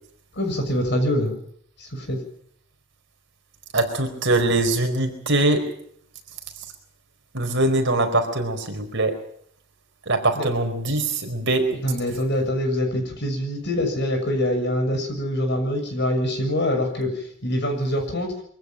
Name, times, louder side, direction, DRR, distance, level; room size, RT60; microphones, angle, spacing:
voice 1, 0.4-1.3 2.1-2.2 10.4-10.5 11.8-17.1 17.4-18.3, left 1 dB, 50° left, 5 dB, 6.6 m, -24 dB
voice 2, 3.7-5.7 7.3-9.2 10.1-11.8, right 2 dB, 55° right, 5 dB, 4.5 m, -22 dB
24.0 x 15.5 x 9.0 m, 0.67 s
head